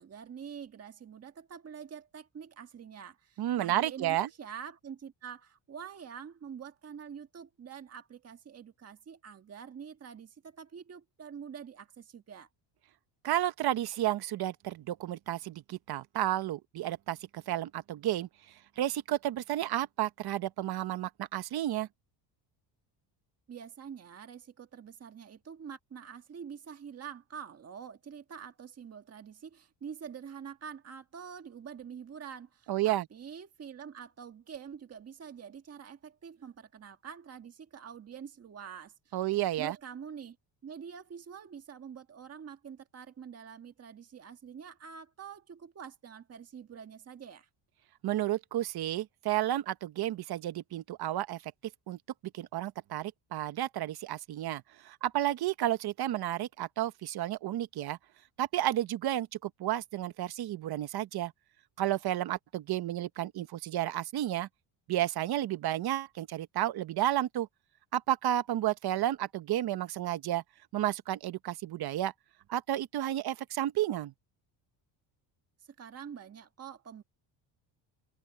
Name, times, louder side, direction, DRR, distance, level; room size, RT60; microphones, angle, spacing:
voice 1, 0.0-12.5 23.5-39.2 39.6-40.4 40.6-47.5 75.6-77.0, right 7 dB, 30° right, 1.6 m, -46 dB
voice 2, 3.4-4.3 13.2-18.3 18.8-21.9 32.7-33.1 39.1-39.7 48.0-51.5 51.9-52.0 52.3-58.0 58.4-61.3 61.8-64.5 64.9-67.5 67.9-70.4 70.7-72.1 72.5-74.1, right 13 dB, 50° right, 1.0 m, -32 dB
cardioid pair, 140°, 49 cm